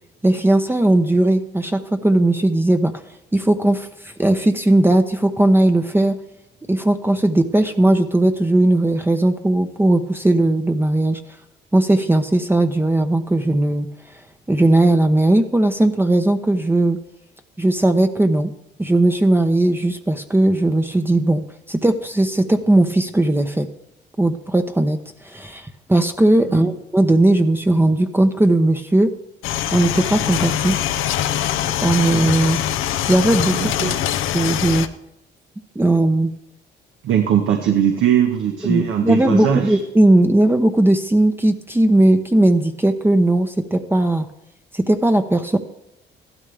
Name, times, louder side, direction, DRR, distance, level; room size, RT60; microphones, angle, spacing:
voice 1, 0.2-2.9 3.3-6.2 6.7-11.2 11.7-13.9 14.5-17.0 17.6-18.5 18.8-23.7 24.2-25.0 25.2-29.1 29.7-30.8 31.8-32.6 33.1-33.9 34.3-34.9 35.8-36.3 38.6-44.3 44.7-45.6, right 1 dB, 10° right, 6 dB, 0.8 m, -17 dB
sound 1, 29.4-34.9, left 11 dB, 90° left, 0.7 m, -23 dB
voice 2, 33.5-34.0 37.0-39.8, right 9 dB, 80° right, 3 dB, 1.4 m, -20 dB
14.5 x 12.0 x 3.5 m, 0.85 s
cardioid pair, 90°, 20 cm